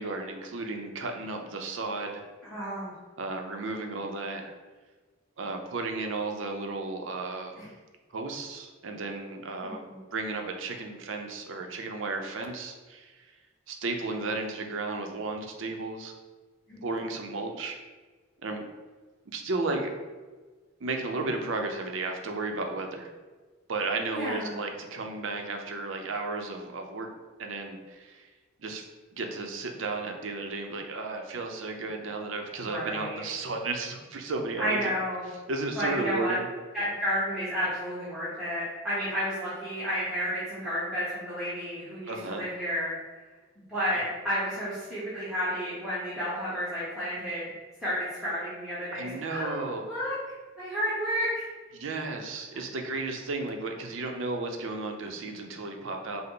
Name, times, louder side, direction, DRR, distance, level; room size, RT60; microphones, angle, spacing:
voice 1, 0.0-2.2 3.2-4.5 5.4-7.5 8.1-9.8 10.1-13.3 13.7-16.1 16.8-17.8 18.4-18.6 19.3-19.9 20.8-23.1 23.7-27.1 27.4-28.3 28.6-28.8 29.1-34.9 35.5-36.5 42.1-42.4 48.9-49.8 51.7-56.2, right 3 dB, 80° right, 4 dB, 0.6 m, -34 dB
voice 2, 2.5-2.9 7.6-7.7 9.6-10.0 16.7-16.8 24.1-24.6 32.6-33.2 34.6-35.3 35.7-36.3 36.7-42.9 43.7-47.4 47.8-50.1 50.6-51.4, equal, 5° right, -11 dB, 1.1 m, -31 dB
5.5 x 2.1 x 3.8 m, 1.3 s
head